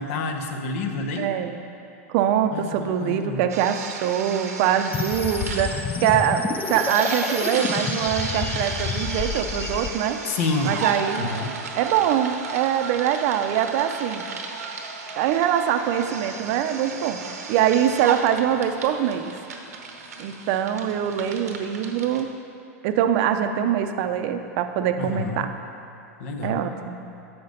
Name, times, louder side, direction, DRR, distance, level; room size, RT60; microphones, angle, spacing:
voice 1, 0.0-1.3 2.5-3.4 10.2-10.8 11.2-11.6 25.0-25.5 26.2-26.7, left 3 dB, 60° left, 4 dB, 0.9 m, -28 dB
voice 2, 1.2-1.6 2.1-10.2 10.6-11.3 11.7-14.2 15.2-17.2 17.5-19.4 20.2-22.3 22.8-25.5 26.4-27.0, right 9 dB, 55° right, 8 dB, 0.5 m, -23 dB
sound 1, 3.5-22.2, right 5 dB, 85° right, 0.9 m, -34 dB
sound 2, 4.9-9.9, left 5 dB, 20° left, 0.4 m, -29 dB
7.7 x 5.7 x 5.2 m, 2.7 s
hypercardioid pair, 110°, 8 cm